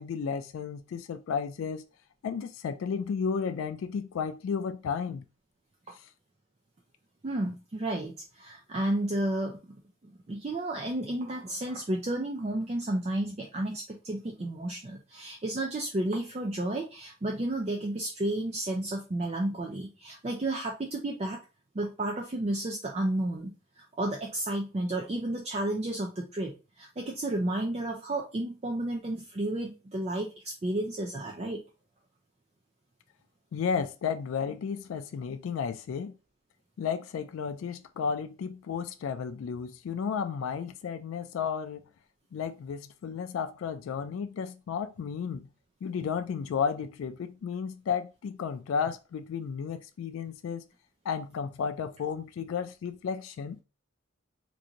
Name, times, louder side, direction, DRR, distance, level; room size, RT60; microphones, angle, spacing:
voice 1, 0.0-1.9 2.2-5.2 5.9-6.1 33.5-36.1 36.8-41.8 42.3-45.5 45.8-50.6 51.0-53.6, left 6 dB, 85° left, 0.3 m, -33 dB
voice 2, 7.2-9.6 10.3-21.4 21.7-31.6, right 1 dB, 30° right, 0.4 m, -32 dB
3.7 x 2.5 x 2.8 m
head